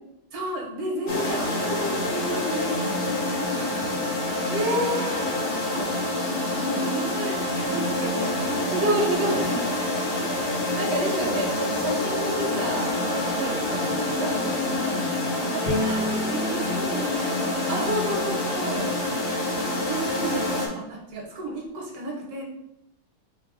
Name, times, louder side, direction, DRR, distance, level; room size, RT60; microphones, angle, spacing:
voice 1, 0.3-4.1 4.7-4.9 5.7-5.9 6.5-8.7 10.2-10.5 11.1-11.3 13.7-13.9 15.5-18.2 18.6-18.9 19.6-22.4, right 2 dB, 55° right, -2 dB, 1.3 m, -34 dB
sound 1, 1.1-20.7, left 2 dB, 85° left, 0.5 m, -27 dB
voice 2, 4.5-5.2 8.7-9.7 10.8-16.0 17.7-18.9, right 1 dB, 85° right, -1 dB, 0.5 m, -29 dB
sound 2, 7.7-17.5, equal, 70° left, 1.8 m, -40 dB
Bowed string instrument, 15.7-18.9, left 1 dB, 35° left, 1.2 m, -32 dB
4.7 x 2.9 x 3.7 m, 0.84 s
omnidirectional pair, 2.3 m